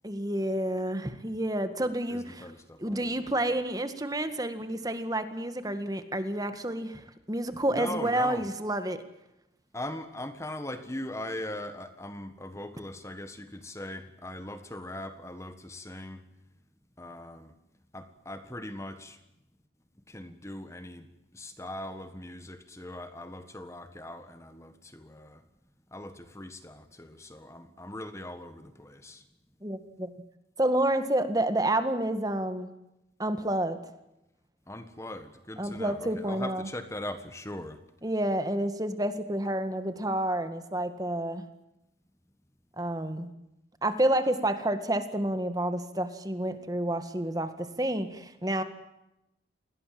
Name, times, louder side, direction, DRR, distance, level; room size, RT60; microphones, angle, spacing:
voice 1, 0.0-2.5 2.8-9.0 29.6-30.1 30.6-32.7 33.2-33.8 35.6-36.7 38.0-41.5 42.8-43.3 43.8-48.6, right 1 dB, 20° right, 9 dB, 1.9 m, -29 dB
voice 2, 1.8-3.4 7.7-8.5 9.7-16.3 17.0-17.5 17.9-19.2 20.1-25.4 25.9-29.2 34.7-37.8, left 1 dB, 15° left, 9 dB, 1.6 m, -40 dB
29.5 x 21.0 x 7.7 m, 0.89 s
head